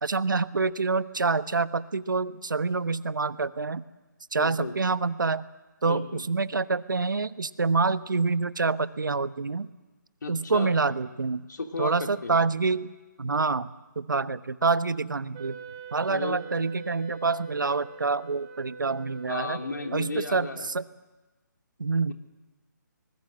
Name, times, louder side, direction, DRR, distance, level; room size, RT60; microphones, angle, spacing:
voice 1, 0.0-3.8 4.3-5.4 5.8-9.7 10.3-11.5 11.8-12.9 13.2-13.7 14.0-15.6 15.9-19.6 19.9-20.8 21.8-22.1, right 4 dB, 80° right, 14 dB, 1.1 m, -27 dB
voice 2, 4.4-4.7 5.8-6.2 10.2-10.8 11.5-12.4 16.1-16.4 19.3-20.7 22.1-22.2, left 3 dB, 70° left, 4 dB, 3.2 m, -34 dB
Wind instrument woodwind instrument, 15.3-20.5, right 6 dB, 25° right, 4.6 m, -43 dB
26.0 x 20.0 x 7.7 m, 1.2 s
figure-of-eight pair, 155°, 10 cm